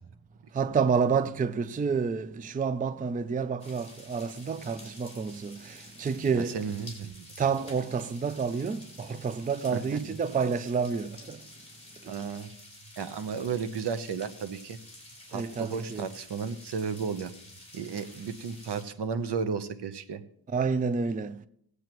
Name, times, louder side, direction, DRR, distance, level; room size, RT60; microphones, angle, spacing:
voice 1, 0.6-5.6 6.0-6.6 7.4-11.4 15.3-16.1 20.5-21.3, right 5 dB, 20° right, 0.4 m, -29 dB
sound 1, 3.6-18.8, left 2 dB, 15° left, 4.1 m, -50 dB
voice 2, 6.5-7.3 9.7-9.8 12.1-12.5 13.0-14.8 15.3-17.3 17.7-20.2, right 6 dB, 70° right, 0.9 m, -33 dB
20.0 x 8.1 x 3.0 m
wide cardioid pair, 105°, 42 cm